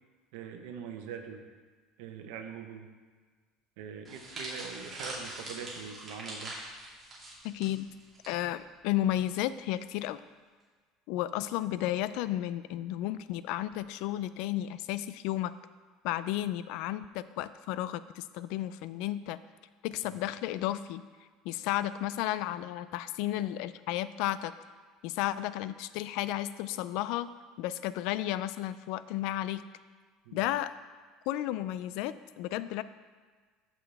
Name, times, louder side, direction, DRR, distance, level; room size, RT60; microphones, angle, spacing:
voice 1, 0.3-1.4 2.0-2.9 3.8-6.6 20.0-20.1 30.2-30.4, right 7 dB, 80° right, 5 dB, 1.0 m, -43 dB
sound 1, 4.0-8.3 8.6-8.8 9.7-10.0, right 1 dB, 15° right, 2.5 m, -43 dB
voice 2, 7.4-7.9 8.3-10.2 11.1-15.5 16.0-19.4 19.8-21.0 21.4-24.5 25.0-27.3 27.6-29.6 30.3-30.7 31.3-32.8, left 13 dB, 65° left, 15 dB, 0.4 m, -33 dB
14.0 x 6.0 x 3.5 m, 1.5 s
cardioid pair, 160°, 0 cm